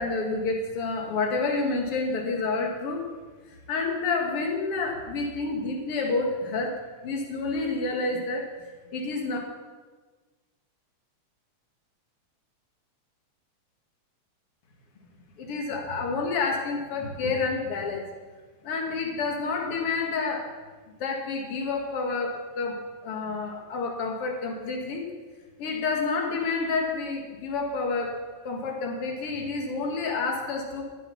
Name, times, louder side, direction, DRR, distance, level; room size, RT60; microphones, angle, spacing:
voice 1, 0.0-3.0 3.7-6.8 7.0-8.5 8.9-9.4 15.4-18.0 18.6-20.5 20.9-25.1 25.6-28.2 28.4-30.8, left 3 dB, 55° left, 1 dB, 2.6 m, -29 dB
14.5 x 9.2 x 5.8 m, 1.4 s
omnidirectional pair, 3.3 m